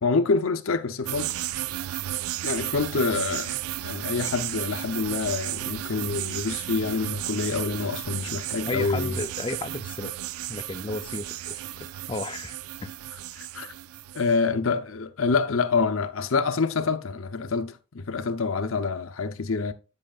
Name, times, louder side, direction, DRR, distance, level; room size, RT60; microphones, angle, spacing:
voice 1, 0.0-1.3 2.4-3.6 3.8-9.2 13.4-13.7 14.1-19.7, left 4 dB, 65° left, 0.7 m, -26 dB
sound 1, 1.1-14.3, right 14 dB, 80° right, 0.3 m, -33 dB
voice 2, 8.1-10.1 10.5-11.6 12.1-12.9, left 2 dB, 25° left, 0.5 m, -34 dB
9.7 x 7.7 x 2.4 m
head